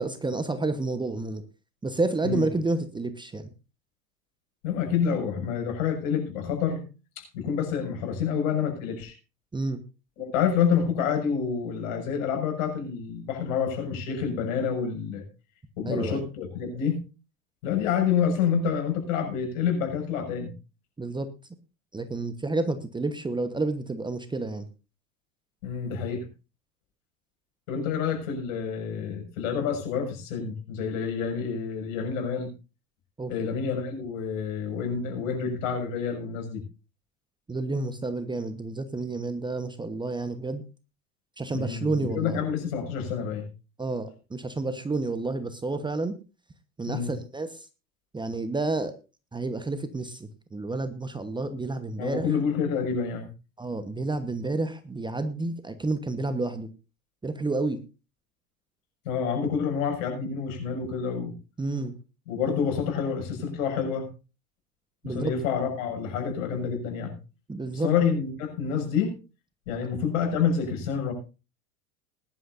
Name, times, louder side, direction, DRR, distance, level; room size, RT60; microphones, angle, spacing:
voice 1, 0.0-1.4 1.8-3.5 9.5-9.8 15.8-16.2 21.0-21.3 21.9-24.7 33.2-33.3 37.5-40.6 41.4-42.4 43.8-46.1 46.8-47.7 48.1-48.9 49.3-52.3 53.6-56.7 57.2-57.8 61.6-62.0 65.0-65.3 67.5-67.9, right 3 dB, 10° right, 11 dB, 1.2 m, -30 dB
voice 2, 4.6-6.8 7.2-9.1 10.2-15.3 15.8-17.0 17.6-20.5 25.6-26.3 27.7-32.5 33.3-36.6 41.5-41.9 42.1-43.5 46.9-47.1 52.0-53.3 59.0-61.4 62.3-64.1 65.0-67.1 67.7-69.1 69.7-71.1, left 7 dB, 65° left, 3 dB, 6.4 m, -28 dB
20.5 x 11.5 x 2.6 m, 0.31 s
hypercardioid pair, 85°, 43 cm